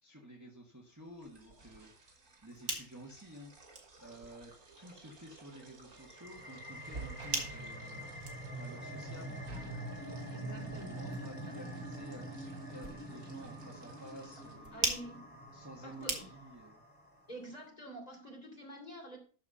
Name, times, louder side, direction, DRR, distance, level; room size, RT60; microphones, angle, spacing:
voice 1, 0.0-9.4 10.4-14.9 15.5-16.8, right 1 dB, 10° right, -1 dB, 1.7 m, -52 dB
sound 1, 1.0-14.5, right 3 dB, 85° right, 2.9 m, -54 dB
sound 2, 2.3-16.7, right 3 dB, 55° right, 2.3 m, -44 dB
sound 3, 6.0-17.2, right 1 dB, 5° left, 3.0 m, -45 dB
voice 2, 10.3-11.3 14.7-15.4 15.8-16.3 17.3-19.2, right 1 dB, 25° left, 1 dB, 3.2 m, -48 dB
13.0 x 4.7 x 5.6 m, 0.41 s
omnidirectional pair, 1.5 m